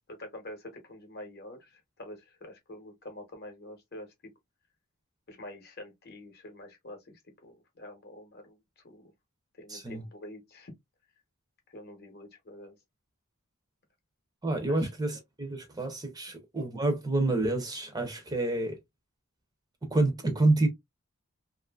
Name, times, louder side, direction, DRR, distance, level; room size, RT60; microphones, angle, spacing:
voice 1, 0.2-4.1 5.3-8.6 8.8-9.1 9.6-10.7 11.7-12.7 14.7-14.8, left 1 dB, 45° left, 0.8 m, -46 dB
voice 2, 9.7-10.0 14.4-18.8 19.8-20.7, right 2 dB, 15° right, 0.6 m, -28 dB
2.6 x 2.5 x 2.2 m
head